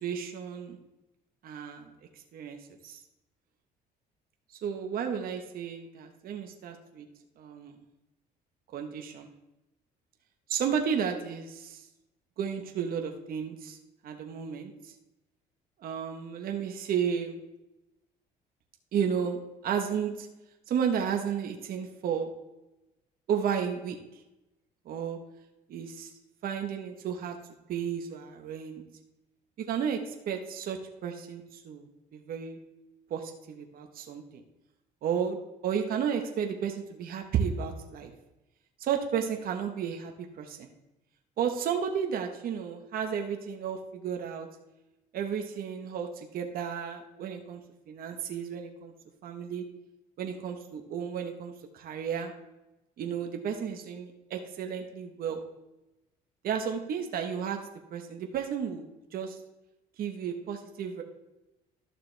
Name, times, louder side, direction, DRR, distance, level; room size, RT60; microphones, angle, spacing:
voice 1, 0.0-0.8 1.4-1.9 2.3-2.6 2.8-3.0 4.6-7.1 7.4-7.7 8.7-9.3 10.5-11.8 12.4-13.8 14.0-14.9 15.8-17.4 18.9-20.3 20.7-22.3 23.3-24.0 24.8-25.2 25.7-26.1 26.4-27.4 27.7-28.8 29.7-30.8 31.0-31.9 32.1-32.6 33.1-34.4 35.0-35.4 35.6-38.1 38.8-40.1 40.4-40.7 41.4-44.5 45.1-47.6 47.9-48.9 49.2-49.6 50.2-52.3 53.0-55.4 56.4-57.6 57.9-59.4 60.0-61.0, right 7 dB, 60° right, 4 dB, 1.2 m, -33 dB
12.5 x 6.7 x 3.4 m, 0.96 s
cardioid pair, 110°, 17 cm